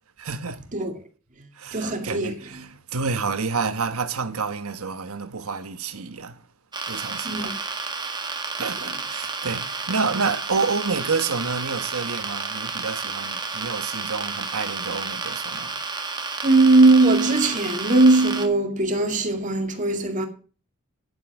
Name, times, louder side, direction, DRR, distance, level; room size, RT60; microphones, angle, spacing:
voice 1, 0.2-0.6 1.5-6.4 6.9-7.6 8.6-15.8, right 4 dB, 70° right, 1.2 m, -29 dB
voice 2, 1.7-2.4 7.2-7.5 16.4-20.3, right 2 dB, 35° right, 2.2 m, -19 dB
sound 1, 6.7-18.5, right 4 dB, 20° right, 1.5 m, -31 dB
10.0 x 8.0 x 5.9 m
head